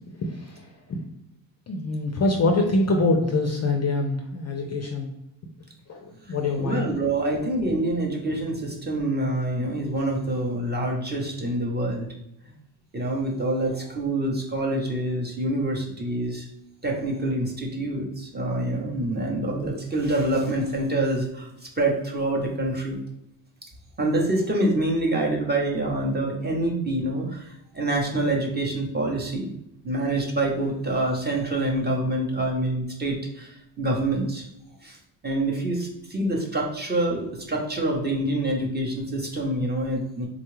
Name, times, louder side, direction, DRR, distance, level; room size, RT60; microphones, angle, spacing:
voice 1, 1.7-5.1 5.9-6.9, left 2 dB, 35° left, 2 dB, 0.4 m, -24 dB
voice 2, 6.3-12.1 12.9-16.5 16.8-21.5 21.8-23.0 24.0-29.5 29.8-34.4 34.8-35.0 35.2-40.3, right 1 dB, 20° right, -1 dB, 0.7 m, -26 dB
3.7 x 2.3 x 3.1 m, 0.83 s
cardioid pair, 105°, 48 cm